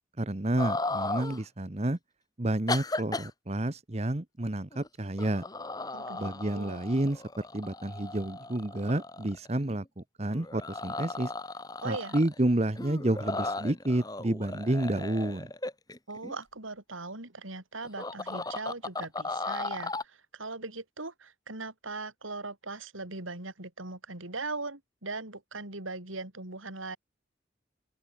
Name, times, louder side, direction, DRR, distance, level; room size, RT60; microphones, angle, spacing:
voice 1, 0.2-2.0 2.4-5.4 6.2-11.3 11.8-15.5, right 1 dB, 35° right, 1.0 m, -30 dB
sound 1, 0.6-1.4 2.7-3.3 4.7-4.9 5.2-9.7 10.3-12.4 12.8-16.3 17.8-20.0, left 2 dB, 20° left, 3.3 m, -36 dB
voice 2, 5.9-6.2 6.5-6.8 11.8-12.2 16.1-27.0, right 3 dB, 90° right, 5.3 m, -39 dB
open air
head